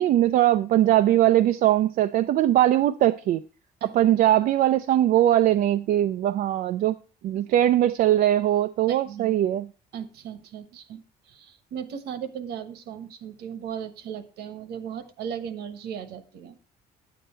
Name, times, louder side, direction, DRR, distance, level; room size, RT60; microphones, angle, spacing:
voice 1, 0.0-3.4 3.9-7.0 7.2-9.7, right 12 dB, 60° right, 0.4 m, -21 dB
voice 2, 8.9-9.4 9.9-11.0 11.3-16.6, right 8 dB, 75° right, 1.2 m, -36 dB
9.1 x 7.8 x 4.4 m
cardioid pair, 110°, 17 cm